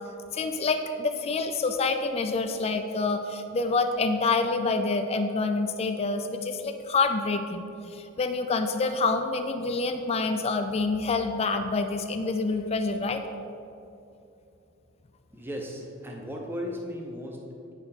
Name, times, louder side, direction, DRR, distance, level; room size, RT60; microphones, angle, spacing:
voice 1, 0.3-13.2, left 3 dB, 30° left, 7 dB, 0.3 m, -27 dB
voice 2, 15.3-17.7, equal, 10° right, 0 dB, 0.6 m, -36 dB
8.8 x 5.3 x 4.2 m, 2.7 s
head